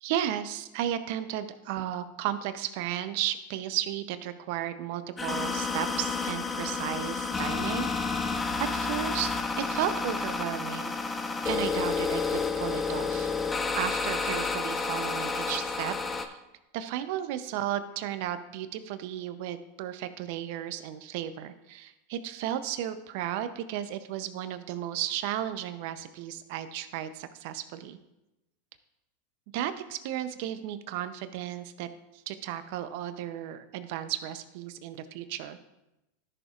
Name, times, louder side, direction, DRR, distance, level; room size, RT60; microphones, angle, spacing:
voice 1, 0.0-7.9 8.6-10.9 11.4-13.3 13.7-16.4 16.7-28.0 29.5-31.9 32.3-35.6, right 11 dB, 60° right, 11 dB, 0.7 m, -34 dB
sound 1, 5.2-16.3, left 4 dB, 20° left, 0.7 m, -30 dB
13.5 x 6.5 x 2.5 m, 0.94 s
hypercardioid pair, 100°, 0 cm